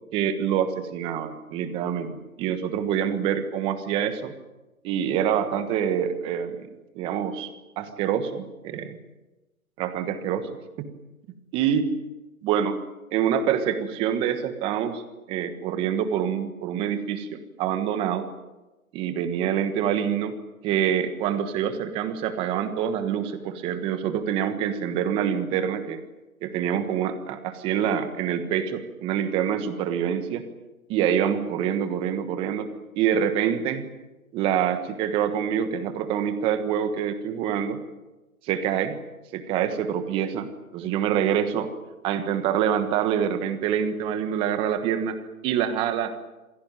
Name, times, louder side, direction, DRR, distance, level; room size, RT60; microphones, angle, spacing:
voice 1, 0.1-4.3 4.8-6.7 6.9-7.5 7.8-9.0 9.8-10.5 10.8-10.9 11.5-11.9 12.4-12.8 13.1-15.0 15.3-18.3 18.9-20.3 20.6-26.0 26.4-30.4 30.9-32.7 33.0-33.9 34.3-37.8 38.4-39.0 39.3-41.7 42.0-46.2, right 9 dB, 10° right, 10 dB, 1.3 m, -26 dB
27.5 x 18.5 x 9.0 m, 1.1 s
hypercardioid pair, 155°, 43 cm